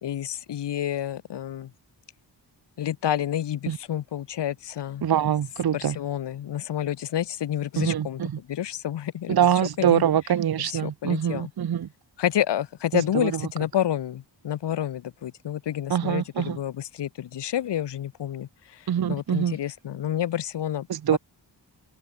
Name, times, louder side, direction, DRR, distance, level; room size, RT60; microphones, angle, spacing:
voice 1, 0.0-1.7 2.8-5.1 5.7-9.4 9.8-10.0 10.6-11.5 12.2-20.9 21.1-21.2, left 11 dB, 65° left, 0.6 m, -29 dB
voice 2, 5.0-6.0 7.8-8.3 9.3-11.9 12.9-13.3 15.9-16.6 18.9-19.6 20.9-21.2, right 9 dB, 55° right, 0.8 m, -24 dB
open air
wide cardioid pair, 130°, 46 cm